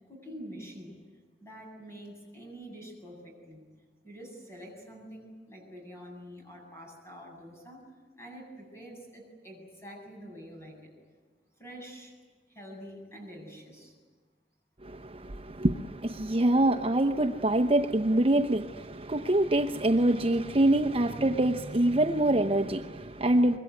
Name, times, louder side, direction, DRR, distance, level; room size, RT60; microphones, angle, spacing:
voice 1, 0.1-1.0 1.4-3.6 4.0-7.9 8.2-10.9 11.6-12.2 12.5-14.0, equal, 15° left, 7.9 m, -46 dB
voice 2, 14.8-23.6, right 1 dB, 35° right, 0.8 m, -25 dB
24.5 x 22.5 x 9.5 m
head